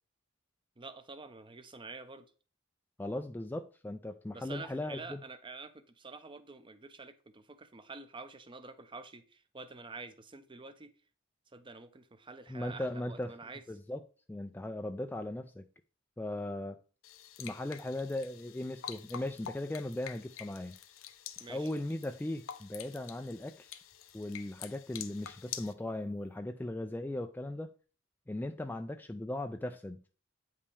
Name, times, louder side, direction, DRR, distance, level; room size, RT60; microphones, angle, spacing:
voice 1, 0.8-2.3 4.3-10.9 11.5-13.6 21.4-21.7, right 3 dB, 25° right, 0.7 m, -48 dB
voice 2, 3.0-5.2 12.5-13.3 13.7-14.0 14.3-15.7 16.2-16.8 17.4-20.8 21.5-23.7 24.1-27.7 28.3-30.0, left 1 dB, 10° left, 0.3 m, -38 dB
sound 1, 17.0-25.7, left 10 dB, 80° left, 0.6 m, -47 dB
8.4 x 5.4 x 3.3 m
head